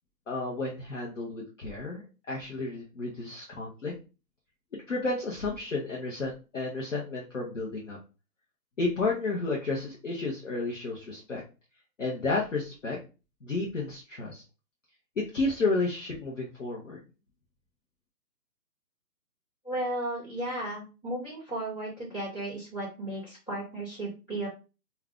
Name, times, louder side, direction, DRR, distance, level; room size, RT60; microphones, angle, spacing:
voice 1, 0.3-2.0 2.3-3.9 4.9-8.0 8.8-11.4 12.0-13.0 13.4-14.4 15.2-17.0, left 3 dB, 50° left, -3 dB, 0.7 m, -31 dB
voice 2, 19.6-24.5, right 1 dB, 15° left, -13 dB, 0.9 m, -34 dB
2.5 x 2.2 x 3.4 m, 0.32 s
hypercardioid pair, 175°, 49 cm